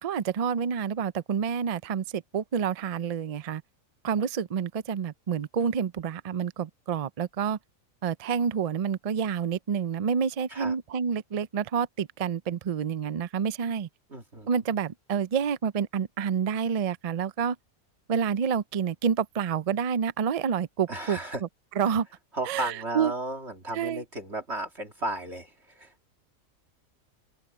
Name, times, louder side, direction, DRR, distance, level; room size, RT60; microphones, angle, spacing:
voice 1, 0.0-3.6 4.0-7.6 8.0-13.9 14.5-17.6 18.1-21.2 21.8-22.1 22.5-23.1 23.7-24.0, right 7 dB, 75° right, 0.3 m, -28 dB
voice 2, 14.1-14.5 20.9-21.4 22.3-25.9, right 1 dB, 50° right, 2.5 m, -34 dB
open air
omnidirectional pair, 1.5 m